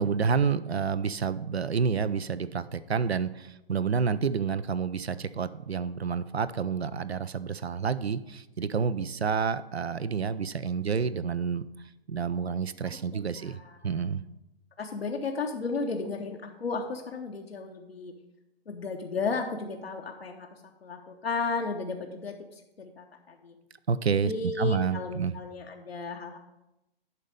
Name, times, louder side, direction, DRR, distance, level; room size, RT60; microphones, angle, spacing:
voice 1, 0.0-11.6 12.1-13.6 13.8-14.2 23.9-25.4, right 6 dB, 90° right, 15 dB, 0.5 m, -29 dB
voice 2, 12.8-13.9 14.8-18.1 18.7-20.5 20.8-22.4 22.8-23.6 24.2-26.4, left 4 dB, 75° left, 2 dB, 0.9 m, -34 dB
11.0 x 4.1 x 5.1 m, 0.92 s
figure-of-eight pair, 120°, 31 cm